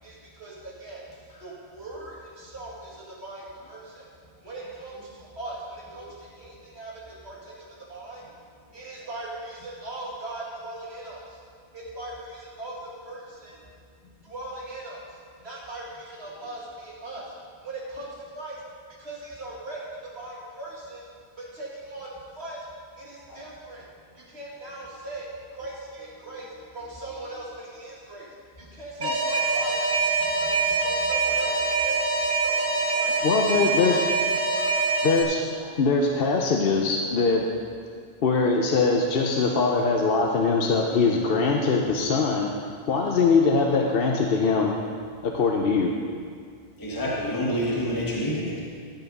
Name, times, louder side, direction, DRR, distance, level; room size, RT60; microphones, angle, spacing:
voice 1, 0.0-1.0 1.4-4.1 4.4-5.1 5.4-7.5 7.9-8.2 8.7-11.4 11.7-13.6 14.2-15.0 15.4-17.2 17.6-18.6 19.0-19.9 20.1-21.0 21.5-22.7 23.0-23.8 24.3-25.3 25.5-26.5 26.7-28.3 28.6-30.5 30.8-33.1 33.4-34.0 34.5-34.8, right 2 dB, 70° right, -5 dB, 2.3 m, -39 dB
Alarm, 29.0-35.2, right 3 dB, 50° right, 1.2 m, -24 dB
voice 2, 33.2-34.0 35.0-37.5 38.2-42.5 42.9-44.7 45.2-45.9, left 4 dB, 60° left, 1 dB, 0.9 m, -22 dB
voice 3, 46.8-48.6, equal, 20° left, -5 dB, 1.4 m, -28 dB
13.0 x 5.9 x 5.3 m, 2.2 s
omnidirectional pair, 1.1 m